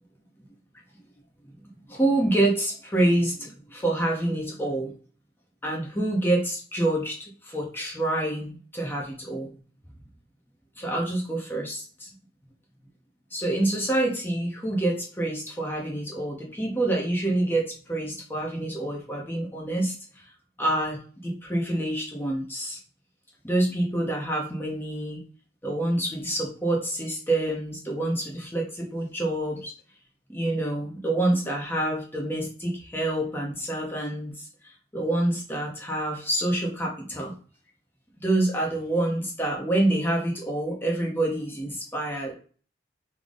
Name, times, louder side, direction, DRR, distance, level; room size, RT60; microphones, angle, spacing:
voice 1, 1.9-4.9 5.6-7.2 7.4-9.5 10.8-12.1 13.3-19.9 20.6-22.8 23.4-25.2 25.6-29.7 30.3-34.5 34.9-37.3 38.2-42.3, right 1 dB, 10° left, -2 dB, 0.9 m, -27 dB
5.7 x 3.5 x 2.5 m, 0.41 s
head